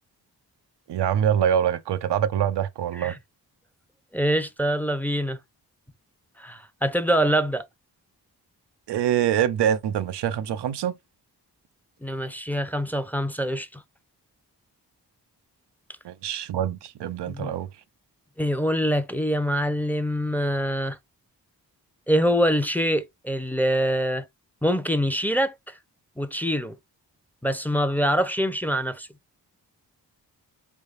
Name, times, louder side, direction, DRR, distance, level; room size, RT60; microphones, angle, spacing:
voice 1, 0.9-3.2 8.9-11.0 16.0-17.7, right 9 dB, 90° right, 0.6 m, -24 dB
voice 2, 4.1-5.4 6.4-7.6 12.0-13.8 17.3-17.5 18.4-21.0 22.1-24.2 24.6-25.8 26.2-26.8 27.4-29.1, equal, 5° left, 0.6 m, -24 dB
4.6 x 3.4 x 2.5 m
cardioid pair, 60°, 40 cm